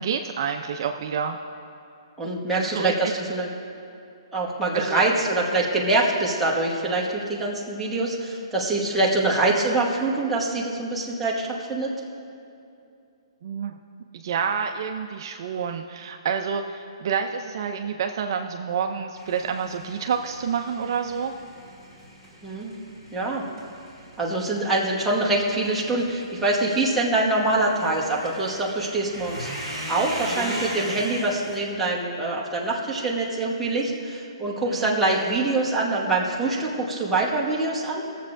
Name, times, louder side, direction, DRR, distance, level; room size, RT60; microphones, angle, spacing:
voice 1, 0.0-1.4 2.5-3.2 4.7-5.0 13.4-13.7 14.1-21.3 34.7-35.0, right 7 dB, 50° right, 4 dB, 0.5 m, -28 dB
voice 2, 2.2-3.5 4.3-11.9 22.4-22.7 23.1-23.4 24.2-38.0, right 2 dB, 5° right, -6 dB, 1.2 m, -24 dB
sound 1, 19.2-31.6, equal, 20° left, 2.5 m, -39 dB
21.5 x 7.3 x 2.5 m, 2.6 s
hypercardioid pair, 160°, 3 cm